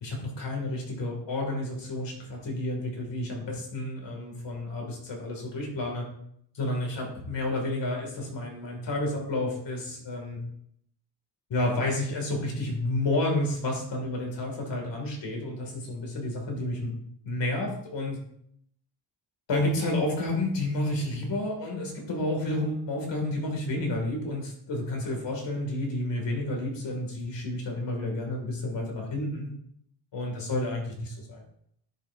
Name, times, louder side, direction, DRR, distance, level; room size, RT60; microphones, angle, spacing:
voice 1, 0.0-6.1 6.5-10.4 11.5-16.9 17.3-18.2 19.5-29.5 30.1-31.4, left 1 dB, 70° left, 0 dB, 2.5 m, -30 dB
10.5 x 6.0 x 2.7 m, 0.71 s
wide cardioid pair, 145°, 46 cm